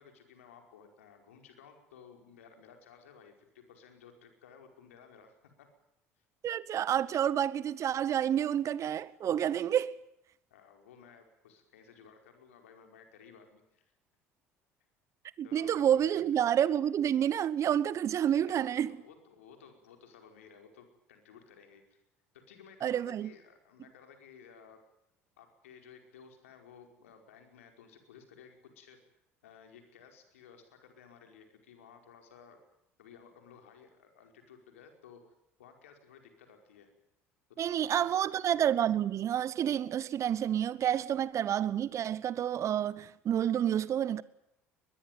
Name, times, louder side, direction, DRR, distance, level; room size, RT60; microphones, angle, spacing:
voice 1, 0.0-5.7 10.5-13.9 15.4-16.2 18.3-22.0 22.5-24.8 25.4-29.0 29.4-32.6 33.0-35.2 35.6-36.9 37.6-38.3, left 6 dB, 80° left, 5.0 m, -56 dB
voice 2, 6.4-9.9 15.4-18.9 22.8-23.3 37.6-44.2, right 10 dB, 45° right, 1.0 m, -29 dB
22.0 x 21.5 x 9.4 m
hypercardioid pair, 65°, 7 cm